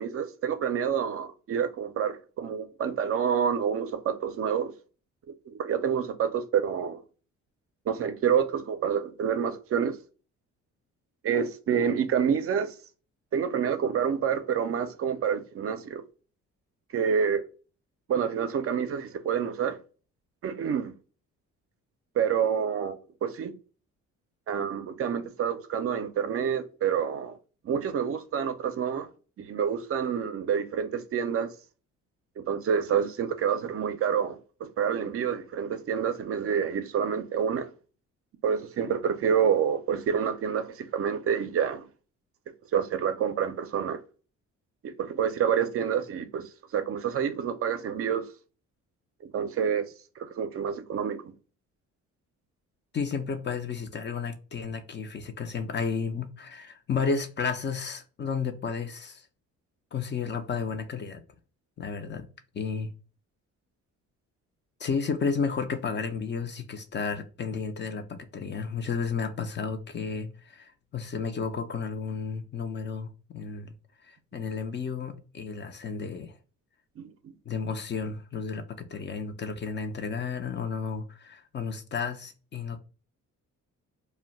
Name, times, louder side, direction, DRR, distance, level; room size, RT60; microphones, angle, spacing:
voice 1, 0.0-4.7 5.5-7.0 7.9-10.0 11.2-12.7 13.3-16.0 16.9-17.4 18.1-19.8 20.4-20.9 22.2-23.5 24.5-27.4 27.6-29.1 29.4-31.5 32.4-37.7 38.4-41.9 42.7-44.0 44.8-48.2 49.2-51.3 77.0-77.3, right 7 dB, 50° right, 0.4 m, -28 dB
voice 2, 52.9-59.3 59.9-61.2 61.8-62.3 62.5-62.9 64.8-73.7 74.0-76.3 77.5-82.8, left 5 dB, 35° left, 0.5 m, -32 dB
2.2 x 2.1 x 3.8 m
cardioid pair, 90°, 30 cm